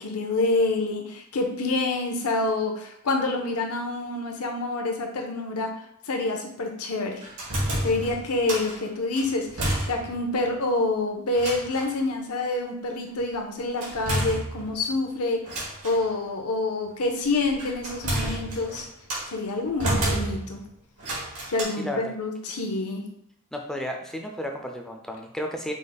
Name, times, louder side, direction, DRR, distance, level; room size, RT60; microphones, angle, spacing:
voice 1, 0.0-5.7 6.1-7.2 7.8-15.5 15.8-18.9 19.3-20.6 21.5-23.0, left 2 dB, 85° left, 3 dB, 0.8 m, -27 dB
sound 1, 7.2-8.8 9.1-10.3 10.6-10.7 11.3-12.0 13.8-14.9 15.4-16.0 17.2-19.3 19.8-20.6 21.0-21.6, right 1 dB, 80° right, 1.5 m, -30 dB
voice 2, 21.8-22.1 22.5-22.6 23.5-25.7, equal, ahead, 2 dB, 0.4 m, -33 dB
5.1 x 2.1 x 3.9 m, 0.73 s
head